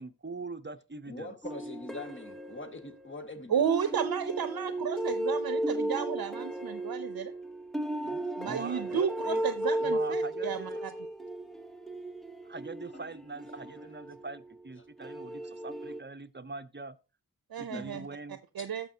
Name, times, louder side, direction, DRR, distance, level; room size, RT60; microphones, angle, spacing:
voice 1, 0.0-1.4 8.4-8.8 9.2-9.4 9.7-10.8 12.4-17.0 17.6-18.4, right 3 dB, 30° right, 0.7 m, -43 dB
voice 2, 1.1-3.6 8.0-8.2 8.9-9.1 10.7-10.8 15.0-15.1 17.6-18.0 18.6-18.7, left 2 dB, 35° left, 1.6 m, -43 dB
sound 1, 1.4-3.2 3.6-14.5 15.0-16.0, right 1 dB, ahead, 1.1 m, -35 dB
voice 3, 3.5-7.3 8.4-10.9 17.5-18.1 18.6-18.9, right 8 dB, 75° right, 0.6 m, -32 dB
14.0 x 5.7 x 2.7 m
cardioid pair, 45°, 36 cm